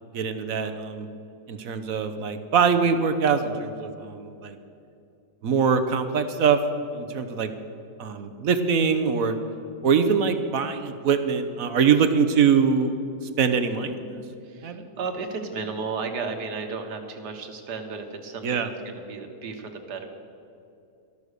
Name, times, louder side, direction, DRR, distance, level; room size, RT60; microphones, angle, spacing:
voice 1, 0.1-1.1 1.5-4.6 5.4-6.6 6.9-7.5 8.0-9.3 9.8-13.0 13.4-14.2 14.6-14.8 18.4-18.7, right 6 dB, 60° right, 9 dB, 1.2 m, -23 dB
voice 2, 14.4-20.1, right 4 dB, 80° right, 5 dB, 1.9 m, -34 dB
13.5 x 12.5 x 6.6 m, 2.5 s
omnidirectional pair, 1.7 m